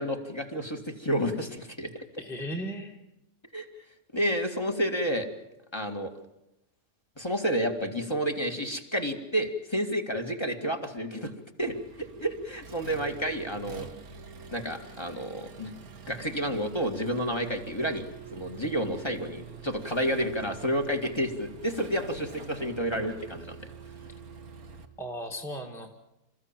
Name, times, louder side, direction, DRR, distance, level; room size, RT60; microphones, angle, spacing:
voice 1, 0.0-2.1 3.5-3.7 4.1-5.3 5.7-6.1 7.2-11.3 11.6-13.9 14.5-15.7 16.1-18.0 18.3-23.6, equal, 20° left, 3 dB, 2.1 m, -30 dB
voice 2, 2.2-3.0 25.0-25.9, equal, ahead, 0 dB, 2.0 m, -36 dB
Accelerating revving vroom, 11.6-24.8, right 5 dB, 85° right, 2.0 m, -46 dB
28.0 x 15.0 x 9.1 m, 0.90 s
omnidirectional pair, 1.5 m